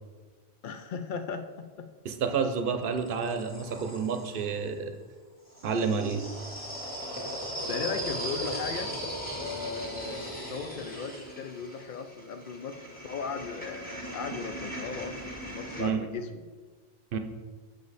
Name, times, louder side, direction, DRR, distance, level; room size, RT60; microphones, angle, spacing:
voice 1, 0.6-1.9 7.7-8.9 9.3-16.5, left 5 dB, 60° left, 7 dB, 0.7 m, -37 dB
voice 2, 2.0-5.0 5.6-6.3 15.8-16.0 17.1-17.2, right 5 dB, 60° right, 8 dB, 0.8 m, -29 dB
sound 1, 2.5-4.6 5.5-15.9, equal, 10° left, 1.6 m, -38 dB
6.6 x 5.1 x 4.1 m, 1.4 s
omnidirectional pair, 1.0 m